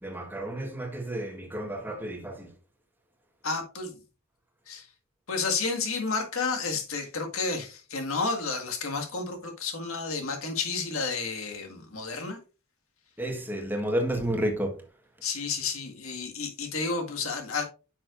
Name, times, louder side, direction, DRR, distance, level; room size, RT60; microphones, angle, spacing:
voice 1, 0.0-2.5 13.2-14.8, right 1 dB, 10° right, 1.4 m, -31 dB
voice 2, 3.4-4.0 4.7-4.9 5.3-12.4 15.2-17.6, left 4 dB, 90° left, 1.8 m, -31 dB
9.5 x 6.1 x 2.5 m
head